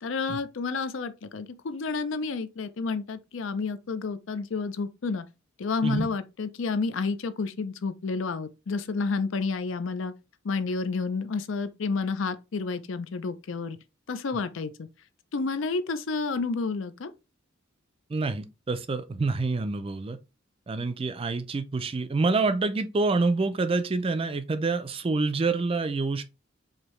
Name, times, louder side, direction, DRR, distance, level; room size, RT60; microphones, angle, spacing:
voice 1, 0.0-5.2 5.6-10.1 10.4-13.8 14.1-14.9 15.3-17.1, left 4 dB, 65° left, 0.5 m, -30 dB
voice 2, 18.1-20.2 20.7-26.2, right 3 dB, 25° right, 0.4 m, -27 dB
4.9 x 2.7 x 3.1 m
head